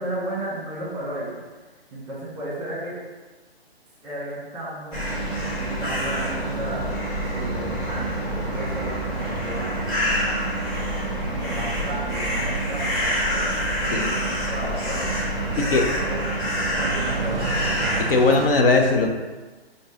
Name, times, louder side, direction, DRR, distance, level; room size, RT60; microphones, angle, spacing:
voice 1, 0.0-1.4 1.9-2.9 4.0-6.8 7.3-10.5 11.3-16.2 16.7-17.6, right 1 dB, 10° right, -7 dB, 1.1 m, -34 dB
sound 1, 4.9-18.0, equal, 15° left, 1.4 m, -26 dB
sound 2, 7.0-18.5, right 4 dB, 45° right, 0.5 m, -37 dB
voice 2, 18.1-19.1, left 3 dB, 60° left, 3 dB, 0.6 m, -19 dB
5.3 x 2.7 x 3.7 m, 1.3 s
figure-of-eight pair, 145°, 32 cm